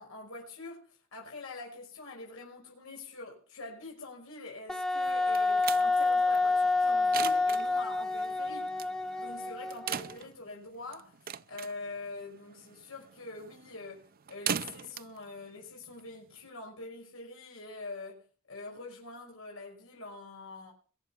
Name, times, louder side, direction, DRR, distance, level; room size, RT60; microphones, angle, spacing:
voice 1, 0.0-8.7 9.2-11.2 11.5-18.2 18.5-20.7, left 3 dB, 75° left, 5.6 m, -44 dB
Wind instrument woodwind instrument, 4.7-10.2, left 3 dB, 5° left, 0.8 m, -28 dB
sound 1, 5.0-16.5, right 8 dB, 45° right, 0.6 m, -41 dB
22.0 x 8.7 x 5.7 m
head